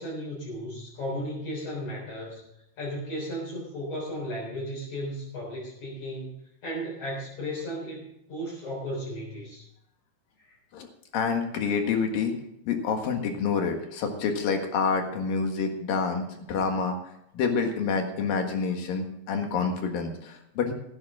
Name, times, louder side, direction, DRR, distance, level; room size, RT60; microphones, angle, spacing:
voice 1, 0.0-2.4 2.8-6.3 6.6-9.6 10.4-10.6, equal, 45° left, -6 dB, 5.2 m, -35 dB
voice 2, 11.1-12.4 12.7-17.0 17.3-20.7, left 5 dB, 65° left, 4 dB, 3.1 m, -27 dB
15.5 x 12.5 x 3.7 m, 0.81 s
omnidirectional pair, 4.7 m